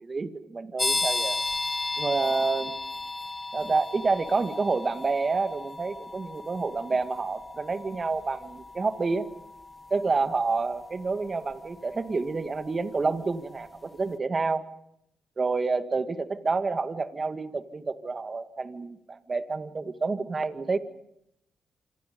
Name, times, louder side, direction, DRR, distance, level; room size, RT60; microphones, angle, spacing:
voice 1, 0.1-1.4 2.0-2.8 3.5-9.2 9.9-14.6 15.4-20.8, right 4 dB, 35° right, 8 dB, 2.1 m, -28 dB
sound 1, 0.8-13.3, left 3 dB, 25° left, 0.9 m, -35 dB
27.5 x 26.0 x 5.4 m, 0.77 s
cardioid pair, 70°, 0 cm